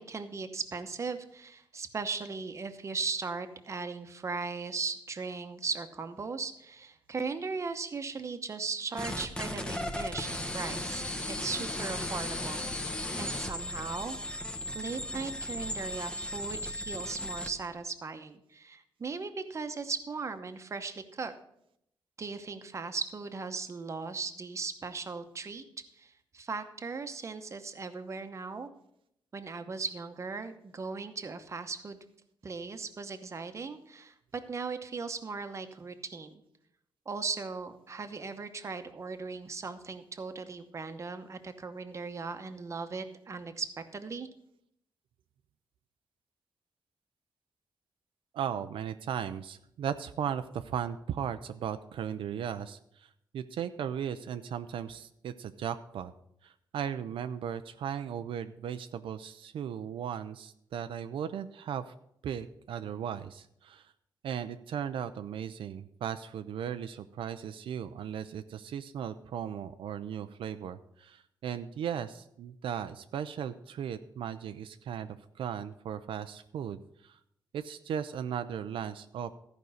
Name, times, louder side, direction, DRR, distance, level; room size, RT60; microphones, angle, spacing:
voice 1, 0.0-14.2 14.7-21.3 22.2-25.6 26.0-28.7 29.3-32.0 32.4-36.3 37.1-44.3, right 4 dB, 35° right, 8 dB, 0.9 m, -38 dB
sound 1, 9.0-17.5, left 1 dB, 10° left, 0.9 m, -36 dB
voice 2, 48.3-56.1 56.4-61.9 62.2-63.9 64.2-77.2 77.5-79.4, right 8 dB, 85° right, 9 dB, 0.5 m, -37 dB
14.0 x 5.3 x 6.4 m, 0.75 s
wide cardioid pair, 140°, 9 cm